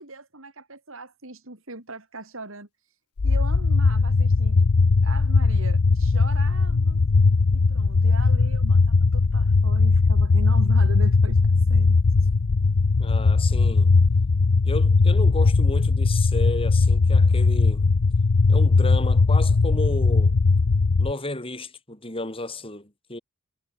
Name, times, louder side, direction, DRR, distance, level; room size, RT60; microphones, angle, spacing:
voice 1, 0.0-4.7 5.0-7.0 7.5-11.9 12.2-12.3, right 2 dB, 60° right, 3.6 m, -40 dB
sound 1, 3.2-21.1, left 4 dB, 90° left, 0.7 m, -19 dB
voice 2, 13.0-13.9 14.6-17.9 18.5-20.4 21.0-23.2, left 2 dB, 25° left, 4.2 m, -33 dB
head